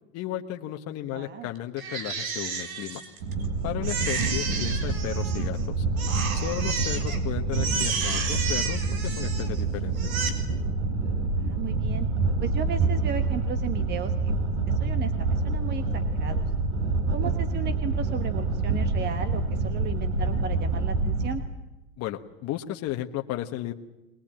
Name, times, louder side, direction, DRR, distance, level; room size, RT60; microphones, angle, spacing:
voice 1, 0.1-3.0 3.6-5.8 6.4-10.1 22.0-23.7, left 13 dB, 35° left, 4 dB, 1.4 m, -34 dB
voice 2, 1.1-1.5 11.4-12.1 12.4-14.3 14.7-16.4 17.1-21.4, right 7 dB, 25° right, 9 dB, 1.4 m, -35 dB
Crying sobbing, 1.8-3.5 3.8-5.6 6.0-7.2 7.5-9.6 9.9-10.3, right 5 dB, 90° right, 4.1 m, -32 dB
sound 1, 3.2-21.3, right 3 dB, 65° right, 5.7 m, -27 dB
22.5 x 21.0 x 9.0 m, 1.0 s
supercardioid pair, 140°, 41 cm